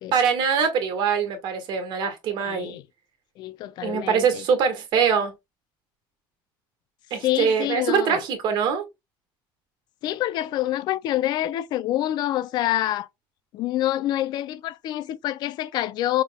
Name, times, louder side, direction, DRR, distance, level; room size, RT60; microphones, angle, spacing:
voice 1, 0.1-2.8 3.8-5.3 7.1-8.8, right 6 dB, 55° right, 1.5 m, -23 dB
voice 2, 2.4-2.8 3.4-4.4 7.2-8.2 10.0-13.1 13.5-16.2, left 14 dB, 55° left, 0.4 m, -26 dB
5.4 x 3.6 x 2.2 m
cardioid pair, 150°, 9 cm